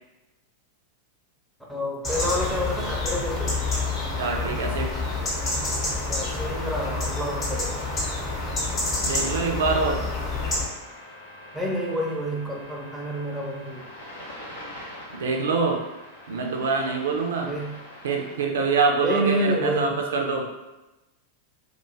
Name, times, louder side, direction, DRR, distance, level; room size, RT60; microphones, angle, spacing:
voice 1, 1.7-3.6 6.1-7.7 11.5-13.8 17.4-17.7 19.0-20.0, equal, ahead, -4 dB, 0.6 m, -28 dB
sound 1, 2.0-10.6, left 3 dB, 25° left, 0.9 m, -28 dB
voice 2, 4.2-4.9 9.0-10.0 15.1-15.8 16.3-17.5 18.0-20.5, right 4 dB, 60° right, 2 dB, 0.4 m, -25 dB
sound 2, 10.5-18.4, left 1 dB, 65° left, 0.6 m, -43 dB
2.3 x 2.1 x 3.1 m, 1.0 s
figure-of-eight pair, 90°, 0 cm